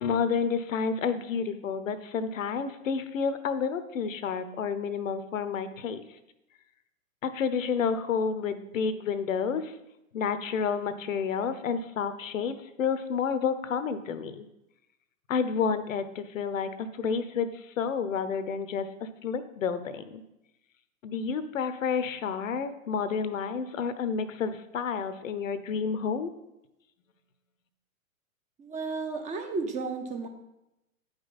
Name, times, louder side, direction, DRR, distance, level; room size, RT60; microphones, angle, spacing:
voice 1, 0.0-6.0 7.2-9.7 10.1-14.5 15.3-20.2 21.0-26.3, left 6 dB, 65° left, 12 dB, 0.8 m, -30 dB
voice 2, 28.6-30.3, right 4 dB, 15° right, 5 dB, 0.7 m, -33 dB
9.4 x 5.2 x 4.1 m, 0.90 s
figure-of-eight pair, 105°, 41 cm